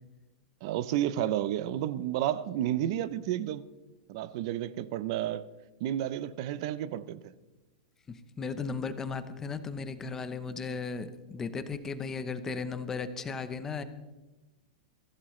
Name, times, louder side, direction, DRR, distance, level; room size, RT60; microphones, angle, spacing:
voice 1, 0.6-3.6 4.1-5.5 5.8-7.3, right 12 dB, 35° right, 0.6 m, -31 dB
voice 2, 8.1-13.8, left 5 dB, 10° left, 0.8 m, -36 dB
23.5 x 15.5 x 3.2 m
supercardioid pair, 175°, 4 cm